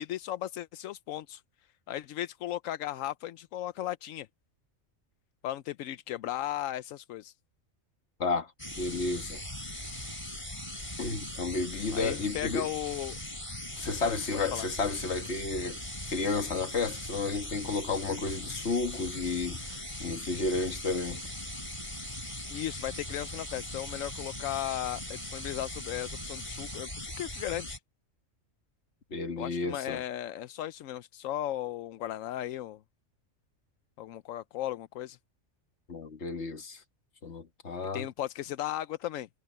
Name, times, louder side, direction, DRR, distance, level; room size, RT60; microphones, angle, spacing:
voice 1, 0.0-1.4 1.9-4.3 5.4-7.3 11.9-13.2 14.0-14.2 14.5-14.7 22.5-27.8 29.4-32.8 34.0-35.2 37.9-39.3, left 12 dB, 85° left, 1.0 m, -36 dB
voice 2, 8.2-9.4 11.0-12.7 13.8-15.8 16.1-21.2 29.1-30.0 35.9-36.8 37.2-38.1, left 3 dB, 60° left, 1.8 m, -32 dB
sound 1, 8.6-27.8, left 1 dB, 25° left, 4.9 m, -40 dB
omnidirectional pair, 1.3 m